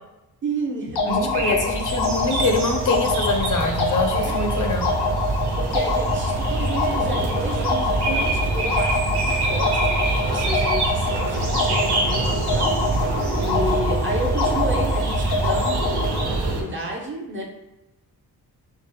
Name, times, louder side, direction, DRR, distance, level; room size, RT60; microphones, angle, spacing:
voice 1, 0.4-1.6 4.1-4.4 5.5-13.1 13.4-17.4, right 1 dB, 30° right, -1 dB, 0.5 m, -31 dB
sound 1, 1.0-16.3, left 3 dB, 90° left, 0.8 m, -26 dB
voice 2, 1.1-4.9 8.1-8.2, left 3 dB, 55° left, 3 dB, 0.5 m, -24 dB
sound 2, 1.1-16.6, right 2 dB, 90° right, 0.7 m, -25 dB
sound 3, 5.6-16.8, right 2 dB, 60° right, 1.4 m, -42 dB
4.6 x 2.0 x 3.0 m, 0.95 s
wide cardioid pair, 160°, 39 cm